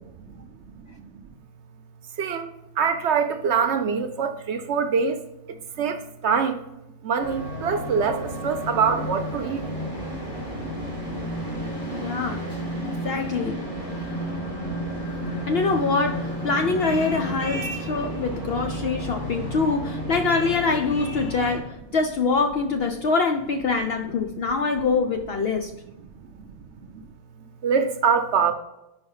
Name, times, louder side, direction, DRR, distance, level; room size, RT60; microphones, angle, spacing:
voice 1, 2.2-5.2 5.5-6.6 7.0-9.6 18.0-18.2 26.9-27.0 27.6-28.5, right 6 dB, 60° right, 7 dB, 0.8 m, -24 dB
sound 1, 7.2-21.6, equal, 35° left, 2.4 m, -32 dB
voice 2, 11.9-12.5 12.8-13.6 15.5-25.7, left 4 dB, 65° left, 5 dB, 0.6 m, -24 dB
5.0 x 4.4 x 5.4 m, 0.92 s
omnidirectional pair, 1.4 m